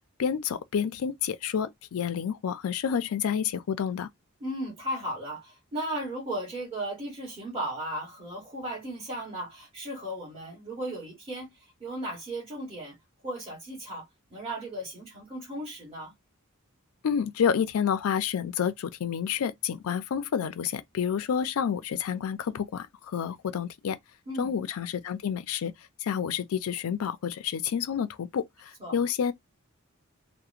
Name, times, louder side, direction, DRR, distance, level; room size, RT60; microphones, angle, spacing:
voice 1, 0.2-4.1 17.0-24.0 24.4-25.7 26.0-29.3, left 7 dB, 85° left, 0.4 m, -29 dB
voice 2, 4.4-13.0 13.2-16.1 24.3-24.5 28.8-29.0, right 1 dB, 25° right, 1.1 m, -36 dB
2.8 x 2.1 x 2.4 m
head